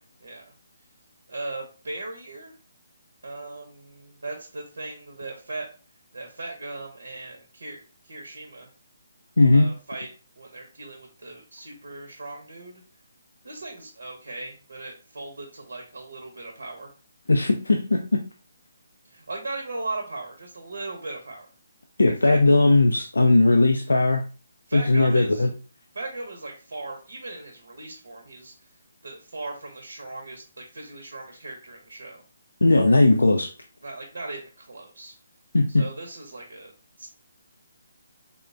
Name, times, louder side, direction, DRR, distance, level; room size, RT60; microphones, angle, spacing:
voice 1, 0.2-0.5 1.3-2.5 3.2-5.7 6.1-8.7 9.5-12.8 13.4-16.9 19.0-21.5 22.2-22.4 24.7-25.5 25.9-28.5 29.0-32.2 33.8-35.1 35.7-36.7 37.0-37.1, right 2 dB, 80° right, 2 dB, 0.7 m, -38 dB
voice 2, 9.4-9.7 17.3-18.2 22.0-24.2 24.7-25.5 32.6-33.5 35.5-35.8, left 2 dB, 90° left, 4 dB, 0.3 m, -18 dB
3.5 x 2.1 x 2.5 m, 0.35 s
figure-of-eight pair, 150°, 0 cm